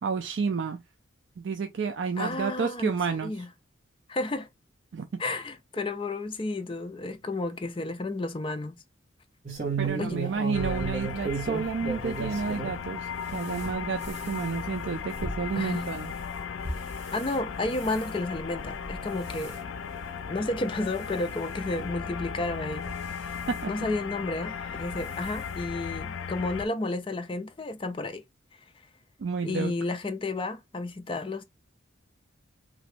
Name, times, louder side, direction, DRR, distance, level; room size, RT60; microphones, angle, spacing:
voice 1, 0.0-0.8 1.4-3.3 4.9-5.1 9.8-16.1 23.5-23.7 24.6-24.8 29.2-29.7, right 5 dB, 60° right, 0.4 m, -30 dB
voice 2, 2.2-2.9 3.2-3.5 4.1-4.5 5.2-8.8 10.0-10.2 15.6-15.9 17.1-19.6 20.3-22.9 23.7-28.2 29.4-31.4, left 2 dB, 25° left, 0.4 m, -31 dB
sound 1, 9.5-12.8 13.2-17.4 17.7-18.1 18.7-19.0 19.3-19.6 20.2-20.3 20.6-20.7 21.9-22.0 22.7-23.6 24.7-24.9 25.2-25.3 25.7-25.8, right 4 dB, 40° right, 1.1 m, -35 dB
sound 2, 10.5-26.7, left 6 dB, 80° left, 0.4 m, -37 dB
2.9 x 2.6 x 3.2 m
head